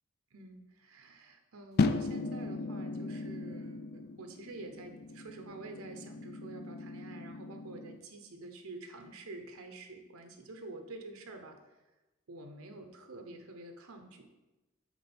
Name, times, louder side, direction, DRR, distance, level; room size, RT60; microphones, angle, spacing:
voice 1, 0.3-11.6 12.3-14.2, right 2 dB, 80° right, 5 dB, 0.8 m, -48 dB
sound 1, 1.8-8.0, left 3 dB, 45° left, 0.3 m, -36 dB
7.2 x 3.7 x 4.4 m, 1.1 s
head